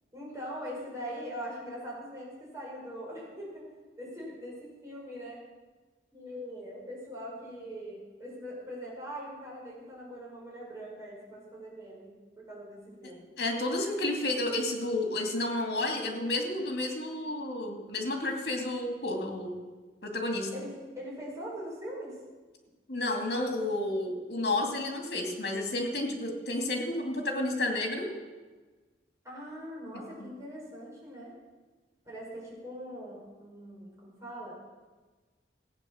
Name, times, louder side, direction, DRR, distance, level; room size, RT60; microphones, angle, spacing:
voice 1, 0.1-3.6 4.0-5.4 6.1-13.3 20.5-22.1 29.2-31.3 32.1-34.6, equal, 15° right, -5 dB, 5.7 m, -42 dB
voice 2, 13.4-19.6 20.0-20.5 22.9-28.1 30.2-30.3, left 2 dB, 60° left, 2 dB, 2.6 m, -31 dB
15.0 x 9.3 x 7.2 m, 1.3 s
head